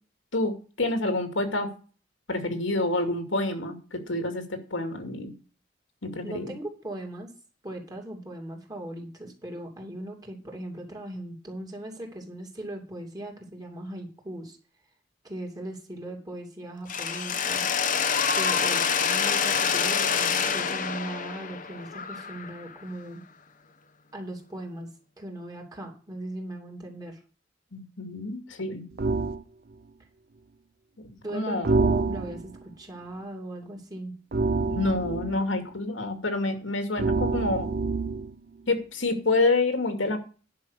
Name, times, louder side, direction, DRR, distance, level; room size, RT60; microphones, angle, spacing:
voice 1, 0.3-1.7 2.3-4.4 4.7-5.3 6.0-6.5 27.7-28.8 31.3-31.8 34.7-37.7 38.7-40.2, left 2 dB, 85° left, 6 dB, 2.3 m, -28 dB
voice 2, 6.2-7.3 7.6-14.6 15.2-17.7 18.3-23.3 24.1-24.9 25.2-27.2 31.2-34.2, right 1 dB, 20° right, 1 dB, 2.8 m, -38 dB
Mechanisms, 16.9-22.8, left 6 dB, 45° left, 0.9 m, -26 dB
sound 1, 29.0-29.4 31.6-32.6 34.3-35.4 37.0-38.3, right 3 dB, 50° right, 0.6 m, -26 dB
10.5 x 6.0 x 6.4 m, 0.37 s
head